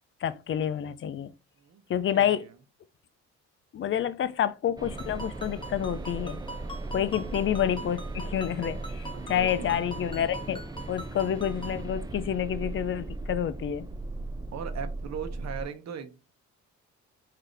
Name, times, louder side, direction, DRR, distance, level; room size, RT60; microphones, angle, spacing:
voice 1, 0.2-1.3 1.9-2.4 3.7-6.4 6.9-10.6 10.9-13.9, left 10 dB, 40° left, 0.5 m, -28 dB
voice 2, 2.1-2.5 6.9-7.3 9.1-9.8 14.5-16.2, right 7 dB, 60° right, 0.9 m, -39 dB
sound 1, 4.8-15.7, right 2 dB, 15° right, 0.4 m, -37 dB
Ringtone, 5.0-11.8, right 1 dB, 15° left, 0.9 m, -44 dB
3.9 x 2.7 x 3.2 m
cardioid pair, 90°, 30 cm